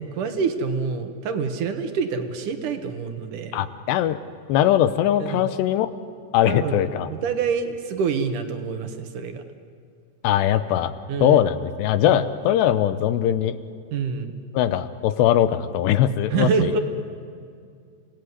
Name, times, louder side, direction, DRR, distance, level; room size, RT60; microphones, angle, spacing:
voice 1, 0.0-3.6 5.2-5.5 6.5-9.4 11.1-11.4 12.1-12.2 13.9-14.4 16.3-16.8, right 5 dB, 60° right, 7 dB, 2.4 m, -26 dB
voice 2, 3.5-4.2 4.5-5.9 6.3-7.1 10.2-10.9 11.2-13.6 14.5-16.7, left 11 dB, 80° left, 12 dB, 3.0 m, -20 dB
30.0 x 18.0 x 9.6 m, 2.3 s
omnidirectional pair, 5.1 m